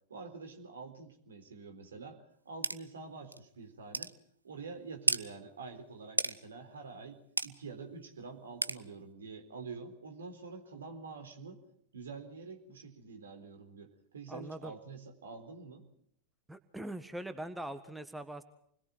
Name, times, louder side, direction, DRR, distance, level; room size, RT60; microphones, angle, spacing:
voice 1, 0.1-4.1 4.4-11.6 11.9-15.8, right 4 dB, 70° right, 6 dB, 4.1 m, -47 dB
sound 1, 2.6-2.8 3.3-3.4 3.9-4.1 5.1-5.2 6.2-6.3 7.4-7.5 8.6-8.8, right 2 dB, 85° right, 0.8 m, -30 dB
voice 2, 14.3-14.7 16.5-18.4, right 1 dB, 5° right, 10 dB, 1.5 m, -42 dB
29.0 x 21.5 x 4.5 m, 0.68 s
figure-of-eight pair, 90°, 0 cm